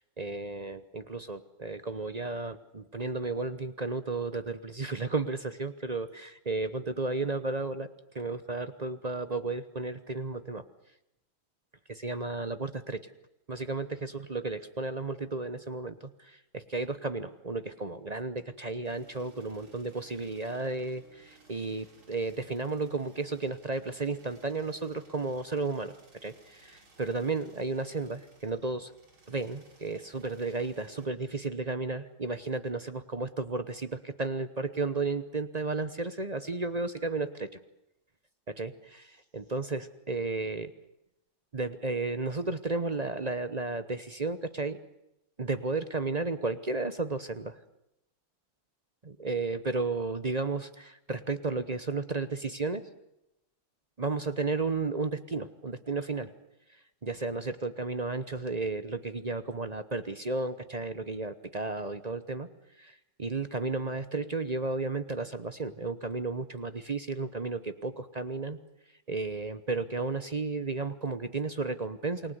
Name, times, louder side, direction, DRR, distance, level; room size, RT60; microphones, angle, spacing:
voice 1, 0.0-7.9 8.1-10.6 11.9-13.1 13.5-28.9 29.3-37.6 38.5-40.7 41.5-44.8 45.4-47.6 49.0-52.8 54.0-56.3 56.7-62.5 62.8-68.6 69.1-72.4, right 3 dB, 35° right, 12 dB, 0.7 m, -33 dB
sound 1, 18.8-31.1, right 3 dB, 85° right, 4.9 m, -60 dB
28.5 x 20.5 x 8.1 m, 0.87 s
omnidirectional pair, 2.2 m